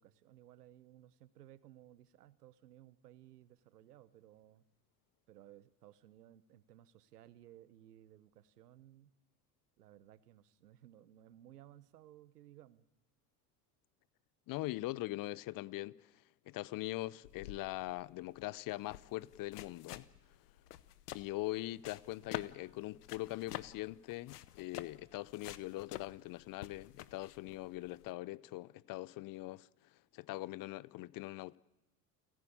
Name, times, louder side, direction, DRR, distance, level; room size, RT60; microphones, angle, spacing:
voice 1, 0.0-4.6 5.3-9.1 9.8-12.9, right 12 dB, 85° right, 1.0 m, -59 dB
voice 2, 14.5-20.1 21.1-29.7 30.1-31.6, left 18 dB, 45° left, 0.7 m, -42 dB
sound 1, 17.2-28.1, left 13 dB, 85° left, 0.8 m, -49 dB
29.0 x 11.0 x 8.8 m
hypercardioid pair, 70°, 46 cm